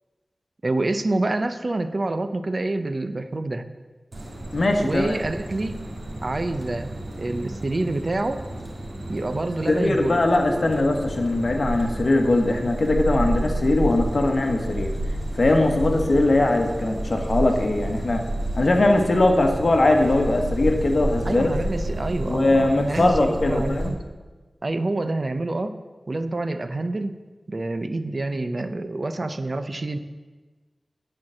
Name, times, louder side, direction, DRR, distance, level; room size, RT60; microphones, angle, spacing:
voice 1, 0.6-3.7 4.8-5.9 6.2-6.9 7.2-8.5 9.1-10.2 21.3-24.0 24.6-25.8 26.1-27.1 27.5-30.0, right 2 dB, 50° right, 10 dB, 0.5 m, -27 dB
sound 1, 4.1-23.9, right 1 dB, 80° right, 1.7 m, -31 dB
voice 2, 4.5-5.2 9.7-14.9 15.4-18.2 18.5-21.5 22.3-24.0, left 2 dB, 60° left, 4 dB, 1.2 m, -21 dB
9.6 x 4.6 x 7.5 m, 1.3 s
wide cardioid pair, 75°, 0 cm